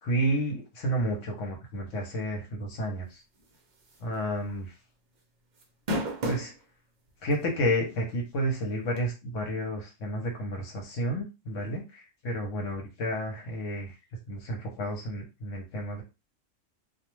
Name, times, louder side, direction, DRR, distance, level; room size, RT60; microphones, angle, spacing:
voice 1, 0.0-3.2 4.0-4.7 6.2-6.5 7.2-13.9 14.3-16.0, equal, 75° left, 2 dB, 1.1 m, -31 dB
sound 1, 3.9-4.1 4.5-4.6 5.6-6.5 7.3-7.4 9.0-9.1, equal, 50° right, 0.6 m, -30 dB
2.3 x 2.2 x 3.0 m, 0.27 s
omnidirectional pair, 1.3 m